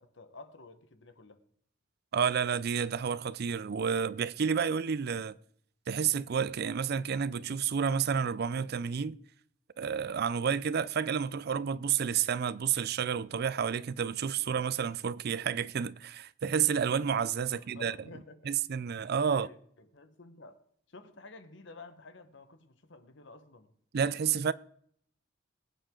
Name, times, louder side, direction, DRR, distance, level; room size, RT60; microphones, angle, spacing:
voice 1, 0.0-1.4 17.4-18.9 19.2-20.6 20.9-23.7, left 3 dB, 65° left, 1.3 m, -52 dB
voice 2, 2.1-5.3 5.9-9.2 9.8-18.0 18.4-19.5 23.9-24.5, right 7 dB, 55° right, 0.4 m, -30 dB
21.5 x 9.0 x 3.8 m
head